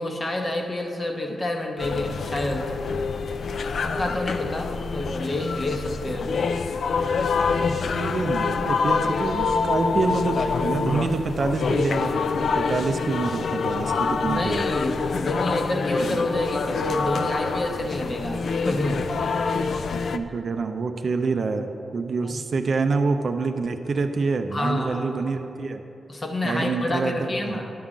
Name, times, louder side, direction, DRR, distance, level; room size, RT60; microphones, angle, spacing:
voice 1, 0.0-2.7 3.8-6.5 14.2-19.1 22.2-22.4 24.5-25.2 26.1-27.7, left 1 dB, 30° left, 2 dB, 0.9 m, -28 dB
sound 1, 1.8-20.2, left 4 dB, 60° left, 0.3 m, -26 dB
voice 2, 7.9-12.2 12.5-14.6 20.1-25.8 26.4-27.6, right 4 dB, 50° right, 7 dB, 0.5 m, -26 dB
11.0 x 3.7 x 7.2 m, 2.7 s
wide cardioid pair, 140°, 0 cm